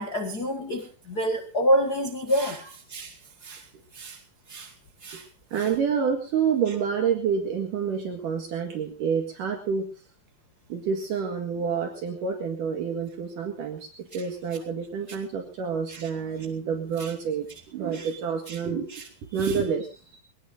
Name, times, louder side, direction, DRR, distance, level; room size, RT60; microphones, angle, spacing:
voice 1, 0.0-3.7 3.9-4.2 4.5-4.7 5.0-5.2 5.6-5.7 15.9-16.1 17.0-17.1 17.9-18.1 18.5-18.6 18.9-19.0 19.4-19.5, equal, 35° left, 3 dB, 1.6 m, -28 dB
voice 2, 5.5-9.9 10.7-19.1 19.3-20.2, right 6 dB, 65° right, 3 dB, 3.3 m, -28 dB
23.0 x 18.0 x 2.7 m, 0.34 s
omnidirectional pair, 4.2 m